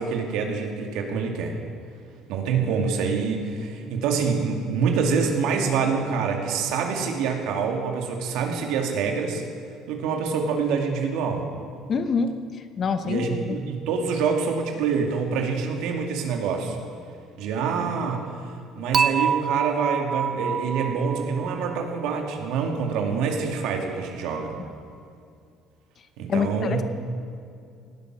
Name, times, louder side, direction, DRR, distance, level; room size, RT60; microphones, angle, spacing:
voice 1, 0.0-1.6 2.3-9.4 9.9-11.5 13.0-16.8 17.4-18.3 18.8-24.6 26.2-26.8, right 5 dB, 75° right, 3 dB, 2.4 m, -26 dB
voice 2, 11.9-12.3 12.8-13.6 26.3-26.8, left 5 dB, 35° left, 10 dB, 0.9 m, -25 dB
Dishes pots and pans / Chink clink, 18.9-22.1, right 7 dB, 30° right, 0.3 m, -26 dB
18.0 x 11.5 x 6.1 m, 2.4 s
cardioid pair, 135°, 0 cm